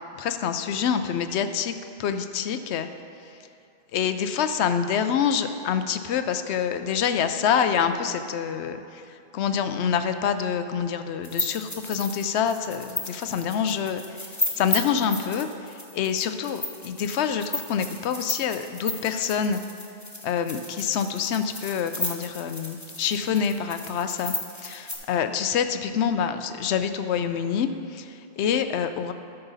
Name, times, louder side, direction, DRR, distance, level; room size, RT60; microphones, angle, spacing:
voice 1, 0.1-1.7 2.0-2.9 3.9-14.0 14.6-19.6 20.2-29.1, left 7 dB, 85° left, 9 dB, 0.9 m, -26 dB
sound 1, 11.2-24.9, left 2 dB, 15° left, 1.0 m, -33 dB
12.5 x 6.8 x 4.0 m, 2.6 s
omnidirectional pair, 1.1 m